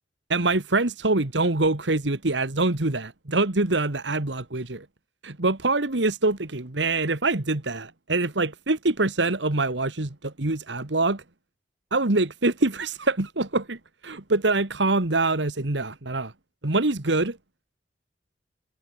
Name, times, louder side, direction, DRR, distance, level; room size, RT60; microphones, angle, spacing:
voice 1, 0.3-4.8 5.2-11.2 11.9-16.3 16.6-17.4, right 2 dB, 80° right, 1.8 m, -25 dB
head